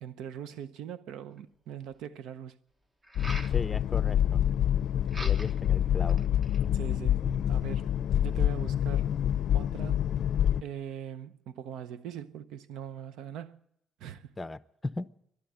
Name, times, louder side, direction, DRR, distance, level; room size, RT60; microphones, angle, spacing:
voice 1, 0.0-2.5 6.7-7.9 8.2-9.1 9.5-10.1 10.6-13.6 14.0-14.3, right 9 dB, 90° right, 0.7 m, -41 dB
sound 1, 1.4-1.5 3.0-3.6 5.1-5.7 6.1-6.7, right 1 dB, 25° right, 1.4 m, -42 dB
sound 2, 3.2-10.6, left 10 dB, 70° left, 0.5 m, -27 dB
voice 2, 3.5-4.4 5.2-6.2 14.4-15.1, left 3 dB, 20° left, 0.7 m, -37 dB
13.0 x 11.5 x 9.8 m
cardioid pair, 90°, 0 cm